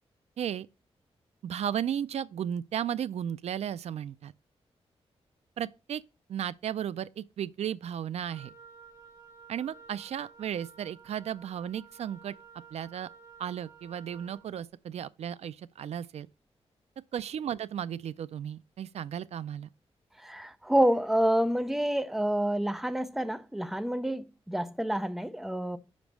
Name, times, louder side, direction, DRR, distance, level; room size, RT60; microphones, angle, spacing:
voice 1, 1.4-4.3 5.6-6.0 6.3-8.5 9.5-12.4 12.7-13.1 13.4-16.3 17.1-19.7, right 9 dB, 75° right, 0.4 m, -34 dB
Wind instrument woodwind instrument, 8.3-14.5, right 6 dB, 35° right, 2.3 m, -53 dB
voice 2, 20.2-25.8, right 1 dB, 5° right, 0.5 m, -28 dB
5.2 x 5.2 x 6.0 m
wide cardioid pair, 145°, 11 cm